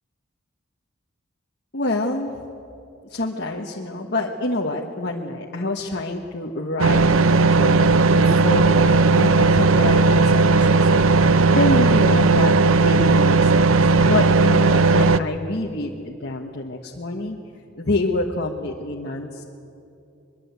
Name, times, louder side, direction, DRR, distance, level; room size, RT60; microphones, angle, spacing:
voice 1, 1.7-2.4 3.0-13.6 14.1-17.4 17.7-19.4, left 2 dB, 50° left, -1 dB, 1.4 m, -27 dB
sound 1, 6.8-15.2, right 3 dB, 70° right, 0.7 m, -16 dB
23.0 x 22.5 x 8.3 m, 2.6 s
head